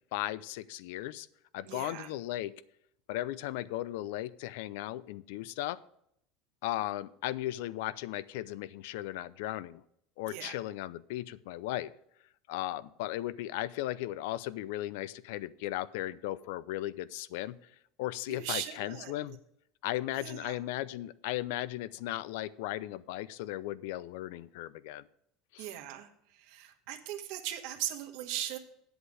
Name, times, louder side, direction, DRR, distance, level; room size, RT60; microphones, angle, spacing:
voice 1, 0.1-1.3 1.5-2.5 3.1-5.8 6.6-9.8 10.2-11.9 12.5-17.6 18.0-19.4 19.8-25.1 25.5-25.7, left 15 dB, 80° left, 18 dB, 0.4 m, -36 dB
voice 2, 1.6-2.1 10.2-10.6 18.3-19.4 20.1-20.6 25.6-28.6, right 12 dB, 70° right, 5 dB, 1.2 m, -39 dB
8.2 x 8.0 x 4.9 m, 0.72 s
supercardioid pair, 135°, 0 cm